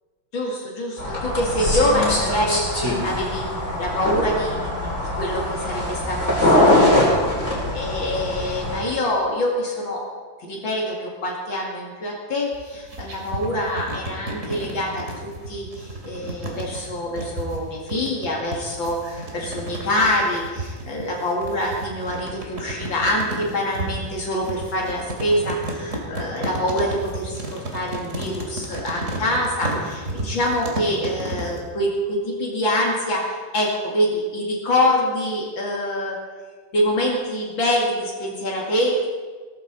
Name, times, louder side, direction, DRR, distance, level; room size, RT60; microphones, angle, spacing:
voice 1, 0.3-3.5 3.8-10.0 10.5-36.2 36.7-39.1, left 1 dB, 70° left, -2 dB, 3.1 m, -25 dB
sound 1, 1.0-8.8, left 1 dB, 35° left, 4.3 m, -22 dB
sound 2, 12.5-31.6, right 1 dB, 40° right, 2.7 m, -32 dB
17.5 x 14.0 x 4.2 m, 1.5 s
omnidirectional pair, 2.2 m